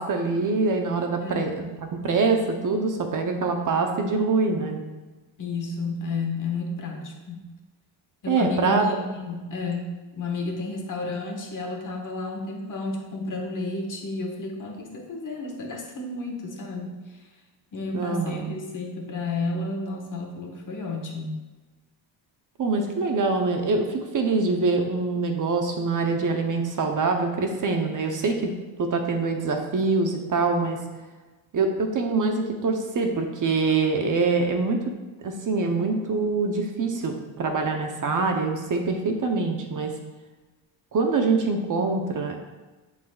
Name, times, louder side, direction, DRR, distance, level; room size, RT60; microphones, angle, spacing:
voice 1, 0.0-4.8 8.3-8.9 17.9-18.5 22.6-28.5 28.8-30.8 31.5-34.8 35.2-39.9 40.9-42.4, right 3 dB, 45° right, 4 dB, 0.8 m, -24 dB
voice 2, 1.2-1.5 5.4-7.4 8.2-16.9 17.7-21.4, left 3 dB, 40° left, 1 dB, 1.3 m, -31 dB
10.5 x 4.1 x 2.3 m, 1.2 s
cardioid pair, 105°, 46 cm